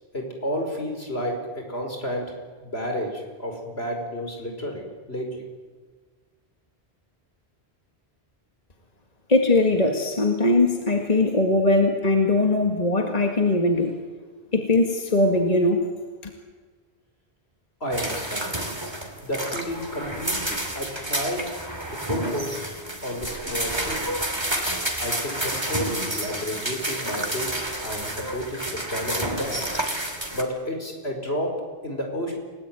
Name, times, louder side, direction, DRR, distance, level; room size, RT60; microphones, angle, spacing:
voice 1, 0.1-2.3 2.6-5.4 17.8-18.6 19.2-21.5 21.9-22.7 23.0-24.2 25.0-29.8 30.3-32.3, equal, 70° left, 2 dB, 5.5 m, -31 dB
voice 2, 9.3-13.9 14.5-15.8, left 2 dB, 35° left, 3 dB, 2.1 m, -20 dB
sound 1, 17.9-30.4, right 1 dB, 25° right, 3.0 m, -30 dB
29.5 x 18.5 x 9.2 m, 1.5 s
omnidirectional pair, 1.1 m